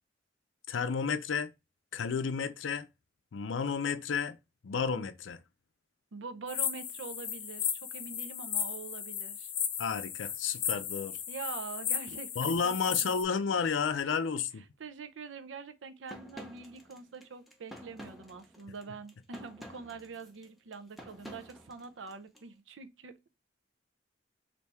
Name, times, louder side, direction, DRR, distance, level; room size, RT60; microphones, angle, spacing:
voice 1, 0.7-1.5 1.9-2.9 3.3-4.4 4.6-5.4 9.8-11.2 12.4-14.6, left 6 dB, 90° left, 0.5 m, -31 dB
voice 2, 6.1-9.5 11.3-13.1 14.3-14.4 14.8-23.3, right 5 dB, 85° right, 0.6 m, -45 dB
sound 1, 6.5-13.2, left 8 dB, 45° left, 0.6 m, -35 dB
sound 2, 16.1-22.4, equal, ahead, 0.6 m, -50 dB
3.4 x 2.6 x 4.2 m
head